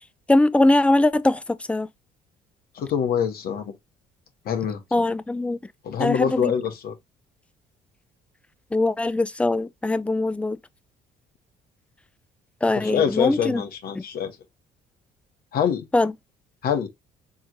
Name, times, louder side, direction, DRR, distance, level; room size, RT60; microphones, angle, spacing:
voice 1, 0.3-1.4 1.7-1.9 4.9-5.6 6.0-6.5 8.7-10.6 12.6-13.6 14.0-14.1 15.9-16.1, left 2 dB, 5° left, 0.4 m, -21 dB
voice 2, 2.7-3.7 4.4-5.0 5.8-6.9 12.7-14.4 15.5-15.9 16.6-16.9, left 8 dB, 65° left, 1.5 m, -25 dB
4.5 x 3.6 x 2.6 m
cardioid pair, 110°, 17 cm